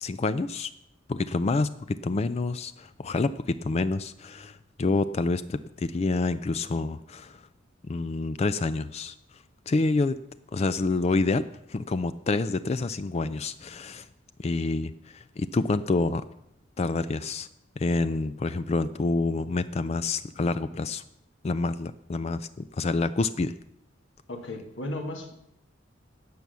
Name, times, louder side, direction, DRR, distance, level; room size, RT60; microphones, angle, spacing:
voice 1, 0.0-0.7 1.1-7.4 7.9-9.2 9.7-10.2 10.5-14.1 14.4-16.2 16.8-17.5 17.8-21.0 21.4-23.5, left 3 dB, 35° left, 13 dB, 0.4 m, -28 dB
voice 2, 24.3-25.3, left 1 dB, 80° left, 4 dB, 2.1 m, -35 dB
16.5 x 6.2 x 6.8 m, 0.80 s
head